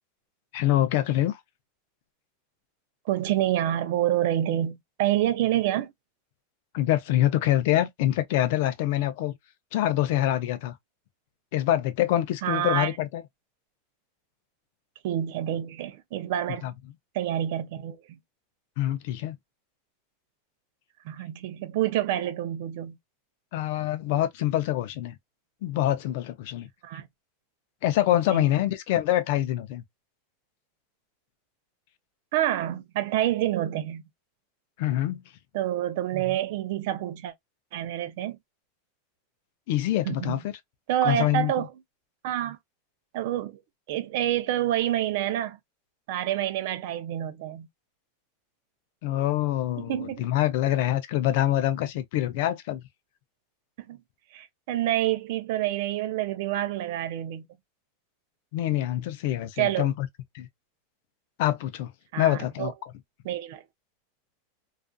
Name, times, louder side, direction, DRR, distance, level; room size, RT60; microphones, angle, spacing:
voice 1, 0.5-1.4 6.7-9.4 9.7-10.8 11.5-13.2 16.6-16.7 18.8-19.4 23.5-25.2 25.6-26.7 27.8-29.8 34.8-35.2 39.7-40.5 41.0-41.7 49.0-52.8 58.5-60.1 60.3-60.5 61.4-62.7, left 13 dB, 50° left, 0.4 m, -25 dB
voice 2, 3.1-5.9 12.4-12.9 15.0-16.7 17.1-18.2 21.0-23.0 26.8-27.1 28.3-28.5 32.3-34.0 35.5-37.3 37.7-38.4 40.0-40.4 40.9-41.7 42.2-42.6 43.1-43.6 43.9-45.6 46.1-47.7 49.8-50.3 53.9-54.0 54.3-57.5 59.6-59.9 62.1-62.7 63.2-63.6, right 12 dB, 55° right, 0.4 m, -27 dB
2.4 x 2.3 x 2.4 m
supercardioid pair, 175°, 0 cm